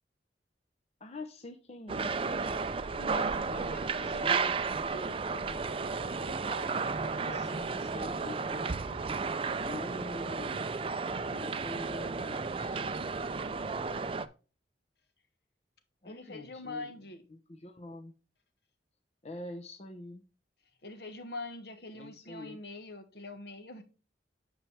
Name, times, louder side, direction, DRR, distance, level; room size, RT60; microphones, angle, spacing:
voice 1, 1.0-2.8 3.5-3.6 4.0-4.6 7.3-9.1 9.6-10.8 11.3-12.9 13.4-14.3 16.0-16.9 17.3-18.1 19.2-20.2 21.9-22.6, left 2 dB, 35° left, 0.7 m, -45 dB
sound 1, 1.9-14.3, right 4 dB, 30° right, 0.5 m, -33 dB
voice 2, 3.0-4.5 4.9-7.6 16.0-17.2 20.8-23.8, left 2 dB, 65° left, 1.3 m, -45 dB
8.9 x 5.6 x 3.3 m
head